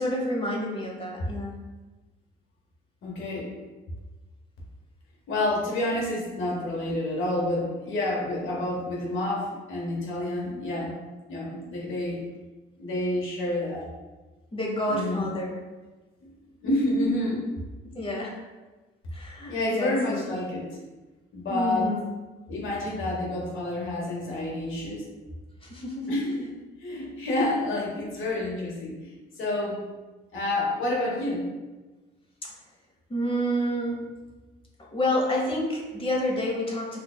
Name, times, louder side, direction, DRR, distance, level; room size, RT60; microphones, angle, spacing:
voice 1, 0.0-1.6 6.4-6.5 8.3-8.5 14.5-15.5 17.9-18.4 19.1-20.2 21.5-22.1 25.6-26.2 33.1-34.0 34.9-37.0, equal, 25° left, -2 dB, 1.1 m, -29 dB
voice 2, 3.0-3.5 5.3-11.0 11.3-12.2 12.8-13.9 14.9-15.3 16.2-16.3 16.6-17.5 19.5-20.7 21.3-21.9 22.5-25.1 26.1-26.5 26.8-29.8 30.3-31.5, left 1 dB, 75° left, -4 dB, 1.3 m, -29 dB
4.6 x 2.6 x 2.3 m, 1.2 s
cardioid pair, 75°, 21 cm